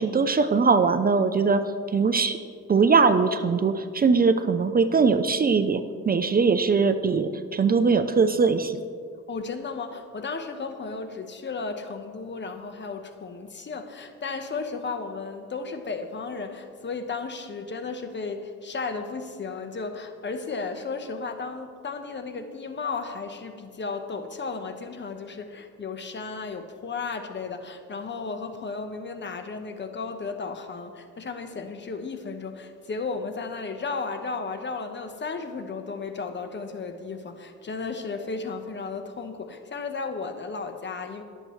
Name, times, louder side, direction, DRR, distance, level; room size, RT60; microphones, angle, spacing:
voice 1, 0.0-1.6 1.9-2.4 2.7-8.8, right 5 dB, 30° right, 9 dB, 0.6 m, -21 dB
voice 2, 9.3-41.2, left 4 dB, 40° left, 7 dB, 1.1 m, -34 dB
22.0 x 7.7 x 3.2 m, 2.2 s
cardioid pair, 90°, 30 cm